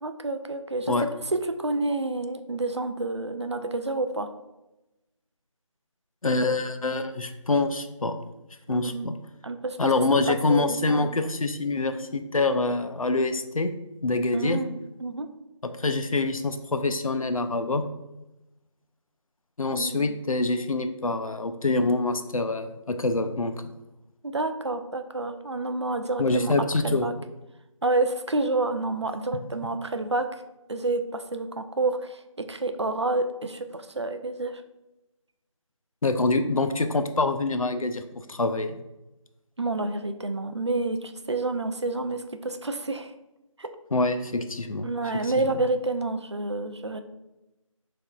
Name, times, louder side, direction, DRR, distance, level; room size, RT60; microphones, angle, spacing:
voice 1, 0.0-4.3 8.7-9.1 9.4-9.8 10.5-11.1 14.3-15.3 19.7-20.2 24.2-26.5 26.8-27.1 27.8-30.4 30.7-34.6 39.6-43.1 43.6-43.7 44.8-47.0, right 2 dB, 55° right, 8 dB, 0.4 m, -29 dB
voice 2, 6.2-8.1 8.7-9.1 9.8-13.7 14.0-14.6 15.8-17.8 19.6-23.5 26.2-27.1 36.0-38.0 38.3-38.8 43.9-44.9 45.2-45.3, left 3 dB, 85° left, 8 dB, 0.5 m, -25 dB
5.7 x 3.5 x 2.3 m, 0.97 s
figure-of-eight pair, 165°, 17 cm